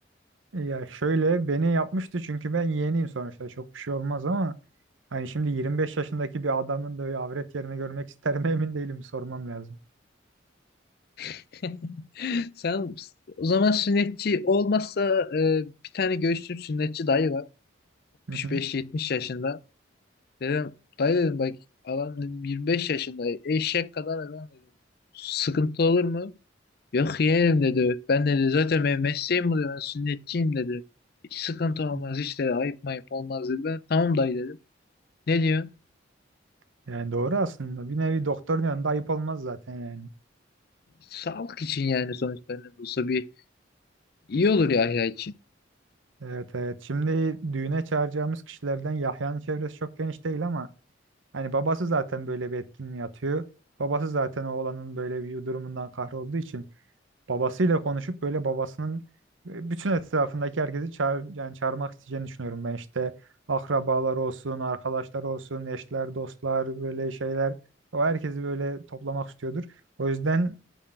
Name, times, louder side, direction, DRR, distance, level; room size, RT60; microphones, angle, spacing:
voice 1, 0.5-4.5 5.1-9.8 18.3-18.6 31.9-32.2 36.9-40.1 46.2-50.7 51.3-53.4 53.8-56.6 57.3-59.0 59.4-63.1 63.5-67.6 67.9-69.7 70.0-70.6, right 3 dB, 90° right, 0.8 m, -29 dB
voice 2, 11.2-13.1 13.4-17.5 18.3-19.6 20.4-21.6 21.8-24.5 25.1-26.4 26.9-30.8 31.3-34.6 35.3-35.7 41.1-43.3 44.3-45.3, left 4 dB, 55° left, 0.5 m, -26 dB
9.1 x 4.5 x 7.4 m
head